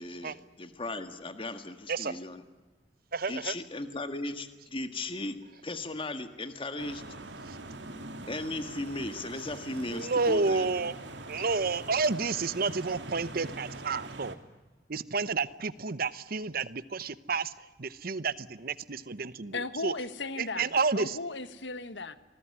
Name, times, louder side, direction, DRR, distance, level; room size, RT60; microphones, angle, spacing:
voice 1, 0.0-2.4 3.3-5.4 5.6-7.0 8.3-10.7, left 2 dB, 30° left, 9 dB, 1.7 m, -36 dB
voice 2, 3.1-3.5 7.5-7.6 9.9-11.0 11.3-14.4 14.9-17.5 17.8-19.9 20.4-21.2, right 4 dB, 55° right, 16 dB, 0.9 m, -30 dB
sound 1, 6.8-14.3, right 2 dB, 75° right, 2.7 m, -43 dB
voice 3, 19.5-20.7 20.9-22.2, left 3 dB, 80° left, 12 dB, 1.5 m, -36 dB
27.0 x 20.0 x 9.9 m, 1.2 s
head